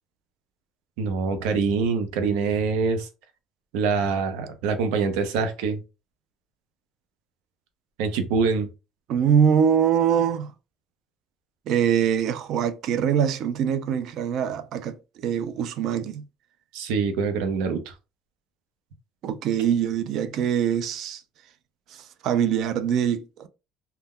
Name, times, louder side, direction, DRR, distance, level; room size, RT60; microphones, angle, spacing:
voice 1, 1.0-3.1 3.7-5.8 8.0-8.7 16.7-17.9, right 5 dB, 90° right, 0.6 m, -25 dB
voice 2, 9.1-10.5 11.7-16.2 19.2-21.2 21.9-23.5, right 8 dB, 45° right, 0.3 m, -23 dB
2.1 x 2.1 x 3.5 m
cardioid pair, 175°, 0 cm